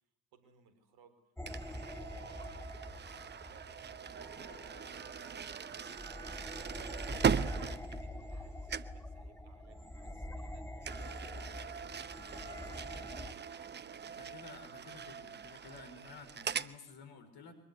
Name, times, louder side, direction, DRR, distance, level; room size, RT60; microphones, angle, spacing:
voice 1, 0.3-1.2 1.5-6.0 6.4-14.4 14.8-15.4, right 6 dB, 55° right, 9 dB, 4.3 m, -64 dB
sound 1, 1.4-13.3, left 1 dB, 5° left, 2.6 m, -46 dB
sound 2, 1.5-8.4 8.7-9.0 10.8-16.7, right 7 dB, 25° right, 0.9 m, -39 dB
voice 2, 14.2-17.5, left 4 dB, 55° left, 7 dB, 5.0 m, -53 dB
23.5 x 21.0 x 9.6 m, 0.78 s
figure-of-eight pair, 55°, 44 cm